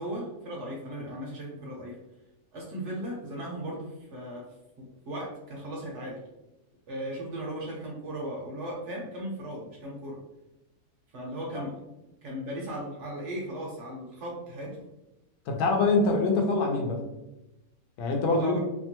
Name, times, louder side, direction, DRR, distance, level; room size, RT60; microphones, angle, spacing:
voice 1, 0.0-2.0 2.5-4.5 4.8-6.2 6.9-10.2 11.1-11.8 12.2-14.8 18.3-18.6, right 1 dB, 60° right, -2 dB, 0.8 m, -37 dB
voice 2, 15.5-17.0 18.0-18.6, left 3 dB, 80° left, 2 dB, 1.1 m, -24 dB
2.8 x 2.2 x 2.8 m, 0.97 s
omnidirectional pair, 1.6 m